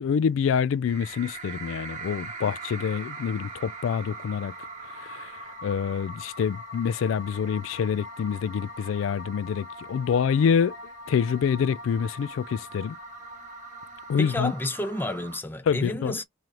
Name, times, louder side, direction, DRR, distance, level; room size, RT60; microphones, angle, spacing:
voice 1, 0.0-4.5 5.1-5.3 5.6-10.7 11.1-13.0 14.1-14.5 15.7-16.2, left 7 dB, 80° left, 0.3 m, -26 dB
sound 1, 0.9-15.4, right 2 dB, 40° right, 1.4 m, -41 dB
voice 2, 14.2-16.2, left 1 dB, 10° left, 0.7 m, -31 dB
3.2 x 2.9 x 3.7 m
head